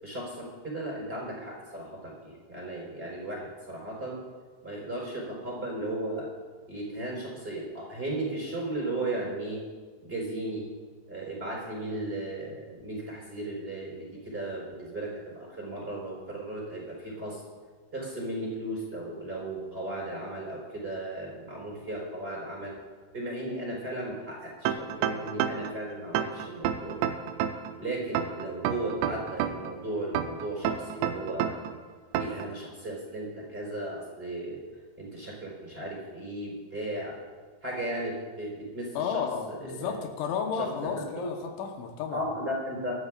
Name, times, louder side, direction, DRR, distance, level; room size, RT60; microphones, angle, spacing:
voice 1, 0.0-4.2 4.6-6.3 6.7-9.6 10.0-10.6 11.1-17.4 17.9-22.8 23.1-27.0 27.8-31.6 32.2-34.6 35.0-37.2 37.6-39.9 40.5-41.3 42.1-42.9, right 1 dB, 15° right, -4 dB, 4.0 m, -36 dB
sound 1, 24.7-25.7 26.2-27.7 28.2-29.7 30.2-31.7 32.2-32.5, right 9 dB, 85° right, 2.8 m, -29 dB
voice 2, 39.0-42.3, left 7 dB, 80° left, 3 dB, 3.5 m, -32 dB
25.5 x 13.0 x 2.5 m, 1.4 s
omnidirectional pair, 5.3 m